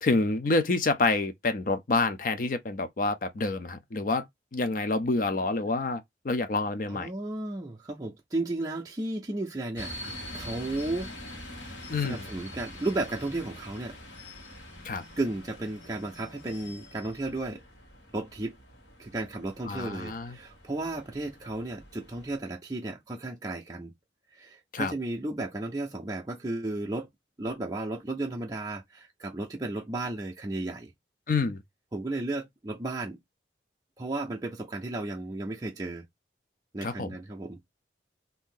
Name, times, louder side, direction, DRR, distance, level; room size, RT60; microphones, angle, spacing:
voice 1, 0.0-4.3 4.5-7.1 11.9-12.3 14.8-15.0 19.7-20.3 24.7-24.9 31.3-31.6 36.8-37.1, left 3 dB, 45° left, 0.5 m, -28 dB
voice 2, 6.9-9.9 10.3-11.1 12.0-14.0 15.2-17.6 18.1-18.6 19.0-23.9 24.3-27.1 27.4-30.9 31.9-33.2 34.0-36.0 36.7-37.6, right 2 dB, 20° right, 0.4 m, -34 dB
sound 1, 9.8-22.4, left 1 dB, 90° left, 1.4 m, -45 dB
2.7 x 2.6 x 3.7 m
head